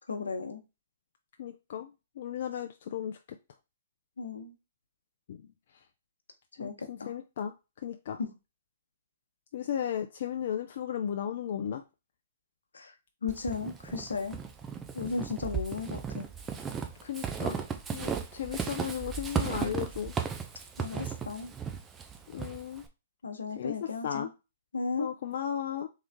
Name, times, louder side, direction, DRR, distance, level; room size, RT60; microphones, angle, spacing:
voice 1, 0.1-0.6 4.2-4.5 6.6-7.1 8.2-8.3 12.7-12.9 13.2-14.4 14.9-16.3 20.8-21.5 23.2-24.3 24.7-25.1, left 4 dB, 85° left, 1.0 m, -35 dB
voice 2, 1.4-3.4 5.3-5.4 6.6-7.5 7.8-8.2 9.5-11.8 17.0-17.6 17.9-20.1 22.3-22.8 23.5-23.8 24.0-24.3 25.0-25.9, left 9 dB, 60° left, 0.5 m, -35 dB
Walk footsteps / Squeak, 13.3-22.9, right 7 dB, 15° right, 0.7 m, -36 dB
3.7 x 3.2 x 3.5 m
hypercardioid pair, 130°, 0 cm